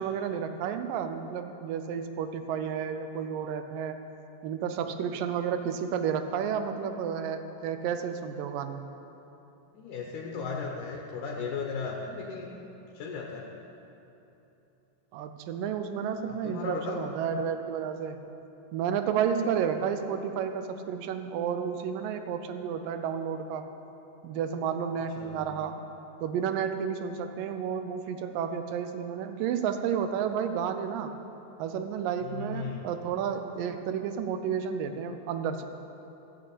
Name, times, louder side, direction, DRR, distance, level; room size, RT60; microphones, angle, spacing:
voice 1, 0.0-4.0 4.4-8.8 15.1-18.2 18.7-23.7 24.2-25.8 26.2-31.1 31.6-35.6, right 7 dB, 90° right, 8 dB, 2.4 m, -31 dB
voice 2, 9.7-12.5 12.9-13.5 16.3-17.0 25.0-25.5 32.2-32.9, left 5 dB, 70° left, 0 dB, 2.5 m, -36 dB
15.0 x 6.9 x 8.6 m, 3.0 s
omnidirectional pair, 3.8 m